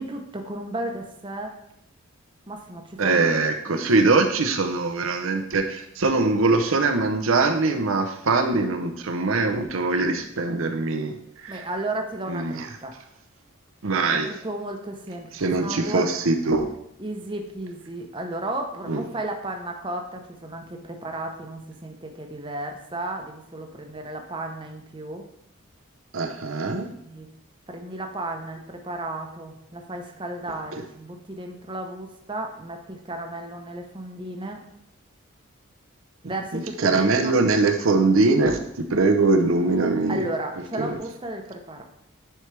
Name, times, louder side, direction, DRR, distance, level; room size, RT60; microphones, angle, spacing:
voice 1, 0.0-1.5 2.5-3.2 3.7-3.9 11.5-12.9 14.1-15.3 15.6-16.2 17.0-25.3 27.0-27.3 27.7-34.6 36.2-37.3 40.1-41.8, right 1 dB, 25° right, 3 dB, 0.8 m, -34 dB
voice 2, 3.0-11.6 12.3-12.7 13.8-14.3 15.3-16.7 18.9-19.0 26.1-26.9 36.5-40.2 40.8-41.0, right 3 dB, 80° right, 5 dB, 0.7 m, -22 dB
10.0 x 4.5 x 3.3 m, 0.76 s
head